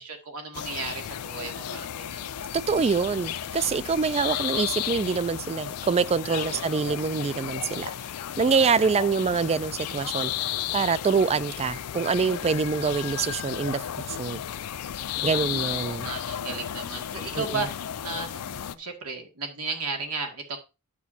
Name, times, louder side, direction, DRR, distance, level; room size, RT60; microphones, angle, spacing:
voice 1, 0.0-2.3 6.3-6.6 15.3-20.6, right 3 dB, 80° right, 2.2 m, -35 dB
sound 1, 0.5-18.7, left 10 dB, 85° left, 0.5 m, -34 dB
voice 2, 2.7-7.9 8.4-13.8 14.1-14.4 15.2-16.1 17.4-17.7, right 5 dB, 30° right, 0.3 m, -25 dB
12.0 x 6.1 x 2.8 m
head